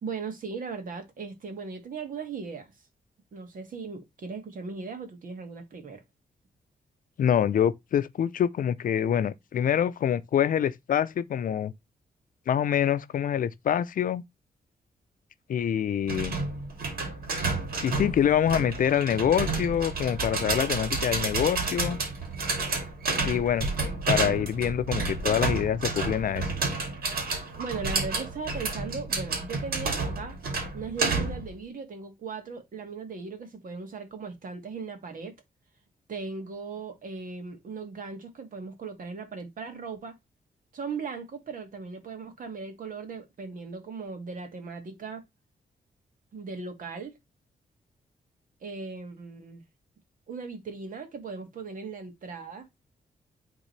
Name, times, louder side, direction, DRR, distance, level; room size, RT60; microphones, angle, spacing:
voice 1, 0.0-2.7 3.3-6.0 27.6-30.4 30.7-35.3 36.1-40.2 40.7-45.2 46.3-47.1 48.6-49.6 50.3-52.7, right 4 dB, 65° right, 2.2 m, -38 dB
voice 2, 7.2-11.7 12.5-14.2 15.5-16.4 17.8-22.0 23.2-23.7 24.1-26.5, left 9 dB, 65° left, 0.6 m, -25 dB
sound 1, 16.1-31.5, right 3 dB, 80° right, 2.5 m, -30 dB
10.0 x 3.8 x 3.2 m
wide cardioid pair, 125°, 15 cm